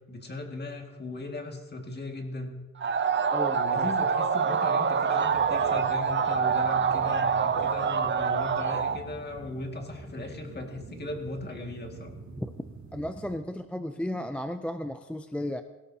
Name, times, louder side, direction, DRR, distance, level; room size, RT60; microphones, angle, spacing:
voice 1, 0.1-2.6 3.5-12.1, left 2 dB, 35° left, 2 dB, 2.0 m, -38 dB
sound 1, 2.8-9.0, right 6 dB, 40° right, 0.6 m, -26 dB
voice 2, 3.3-3.9 12.4-12.5 12.9-15.6, left 1 dB, 5° left, 8 dB, 0.4 m, -34 dB
sound 2, 5.2-13.4, right 3 dB, 75° right, 3.0 m, -46 dB
17.5 x 17.0 x 2.8 m, 1.2 s
wide cardioid pair, 170°, 29 cm